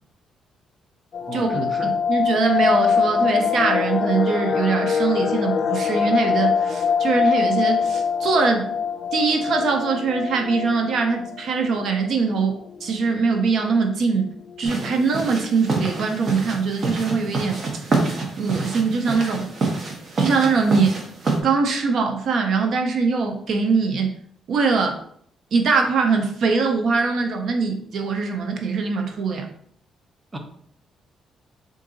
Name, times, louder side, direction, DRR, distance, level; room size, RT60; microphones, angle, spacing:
sound 1, 1.1-11.9 12.2-12.3 12.7-12.9 13.3-13.7 14.3-14.4 14.5-15.1 15.3-15.4, left 6 dB, 55° left, 0.3 m, -23 dB
voice 1, 1.3-2.0 30.3-30.4, right 1 dB, 25° right, 4 dB, 0.6 m, -32 dB
voice 2, 2.1-8.7 9.1-14.3 14.6-17.6 18.4-19.5 20.2-21.0 21.4-24.1 24.5-25.0 25.5-29.5, right 4 dB, 65° right, 3 dB, 0.6 m, -22 dB
sound 2, 14.6-21.4, right 3 dB, 50° right, 0.9 m, -27 dB
3.7 x 2.6 x 3.8 m, 0.62 s
cardioid pair, 90°, 0 cm